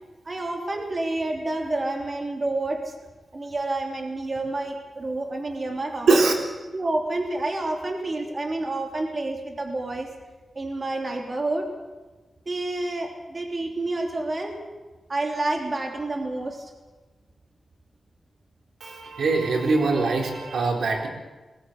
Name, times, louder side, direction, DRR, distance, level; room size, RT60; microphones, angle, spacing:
voice 1, 0.2-2.9 3.3-6.3 6.6-10.1 10.5-11.7 12.4-14.6 15.1-16.7, right 2 dB, 35° right, 2 dB, 3.5 m, -29 dB
voice 2, 18.8-21.1, right 3 dB, 90° right, 1 dB, 4.1 m, -22 dB
21.0 x 17.5 x 8.1 m, 1.2 s
wide cardioid pair, 95°, 0 cm